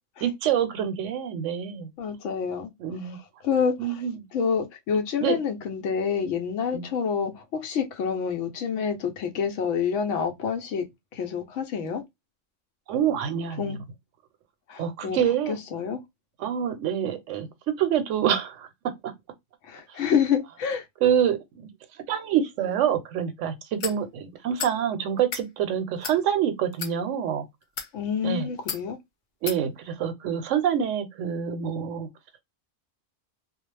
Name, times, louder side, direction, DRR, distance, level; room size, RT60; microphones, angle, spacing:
voice 1, 0.2-1.9 2.8-3.2 3.8-4.2 5.2-5.4 6.7-6.9 12.9-13.8 14.8-15.6 16.4-18.7 19.0-19.1 21.0-21.7 22.1-27.5 28.2-28.5 29.4-32.1, right 9 dB, 80° right, 0.9 m, -26 dB
voice 2, 2.0-2.7 3.4-4.0 4.3-10.8 11.1-12.0 13.6-13.8 14.7-15.2 15.5-16.0 19.7-20.8 27.9-29.0, left 7 dB, 75° left, 0.9 m, -27 dB
sound 1, 23.8-24.0 24.6-24.8 25.2-25.5 26.0-26.2 26.7-26.9 27.6-27.9 28.7-28.8 29.5-29.6, left 7 dB, 60° left, 0.5 m, -33 dB
2.3 x 2.0 x 3.1 m
omnidirectional pair, 1.3 m